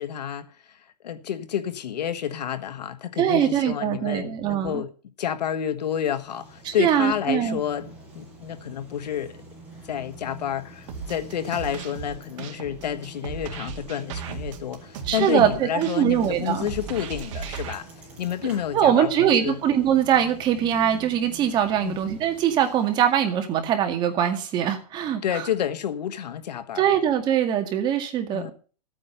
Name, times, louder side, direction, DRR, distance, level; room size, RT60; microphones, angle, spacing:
voice 1, 0.0-4.9 5.2-9.4 9.8-17.9 18.2-19.6 21.8-22.0 25.2-26.9 28.3-28.5, left 9 dB, 85° left, 1.5 m, -30 dB
voice 2, 3.2-4.8 6.7-7.6 15.1-16.7 18.7-25.4 26.8-28.5, right 9 dB, 20° right, 1.9 m, -22 dB
Bicycle, 5.8-23.4, right 3 dB, 5° right, 7.0 m, -46 dB
sound 1, 10.9-17.7, right 6 dB, 50° right, 2.0 m, -36 dB
13.5 x 8.9 x 5.7 m
hypercardioid pair, 160°, 21 cm